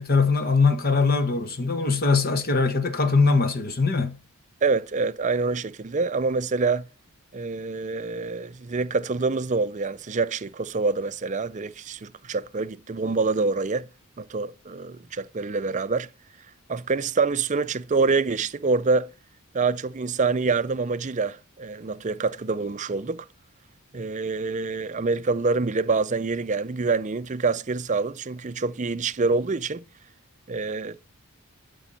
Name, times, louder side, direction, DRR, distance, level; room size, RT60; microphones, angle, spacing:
voice 1, 0.0-4.2, left 4 dB, 40° left, 1.2 m, -21 dB
voice 2, 4.6-6.9 7.3-13.9 14.2-16.1 16.7-19.1 19.5-23.3 23.9-29.8 30.5-31.0, right 4 dB, 35° right, 0.5 m, -26 dB
12.5 x 5.3 x 7.4 m
head